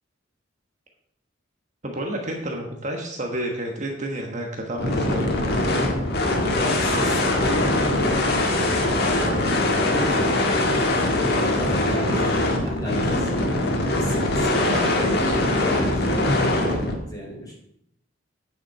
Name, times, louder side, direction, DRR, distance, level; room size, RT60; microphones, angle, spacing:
voice 1, 1.8-5.2 14.7-15.3 16.3-16.5, right 1 dB, 40° right, 1 dB, 1.3 m, -30 dB
sound 1, 4.8-17.0, left 1 dB, 55° left, 1.7 m, -22 dB
voice 2, 6.4-7.8 8.2-10.6 11.3-13.6 13.9-15.1 15.6-17.5, equal, 20° left, -3 dB, 3.7 m, -34 dB
9.4 x 7.2 x 4.8 m, 0.74 s
head